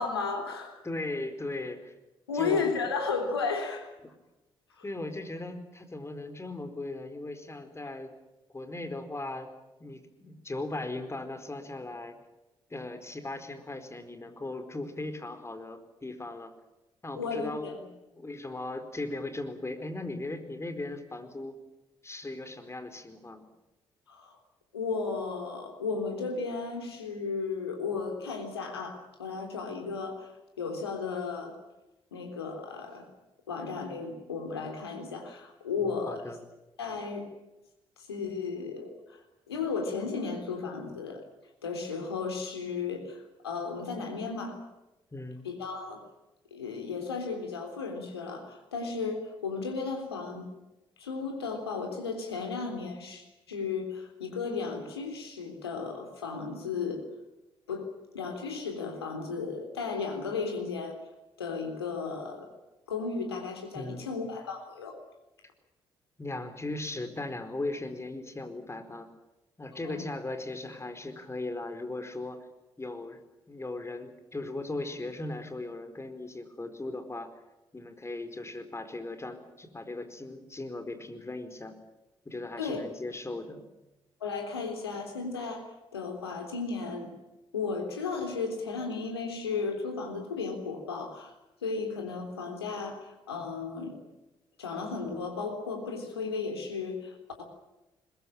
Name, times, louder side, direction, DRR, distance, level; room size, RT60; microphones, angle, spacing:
voice 1, 0.0-0.9 2.3-3.9 4.7-4.8 17.2-17.8 24.1-24.4 24.7-30.3 30.6-31.6 32.1-33.1 33.5-36.3 36.8-37.3 38.0-41.2 41.6-44.6 45.4-46.1 46.5-50.5 51.0-57.0 57.7-57.9 58.1-61.0 61.4-62.5 62.9-65.0 69.8-70.0 82.6-82.8 84.2-87.1 87.5-91.3 91.6-94.0 94.6-97.4, left 4 dB, 85° left, 4 dB, 3.6 m, -34 dB
voice 2, 0.8-1.9 2.3-2.7 4.8-8.1 8.5-9.5 9.8-12.2 12.7-16.5 17.0-21.6 22.0-23.4 36.1-36.4 45.1-45.4 63.7-64.0 66.2-69.1 69.6-72.5 72.8-73.2 73.5-77.3 77.7-81.8 82.2-83.6, left 2 dB, 20° left, 8 dB, 4.7 m, -38 dB
22.0 x 21.5 x 8.9 m, 0.98 s
figure-of-eight pair, 45°, 13 cm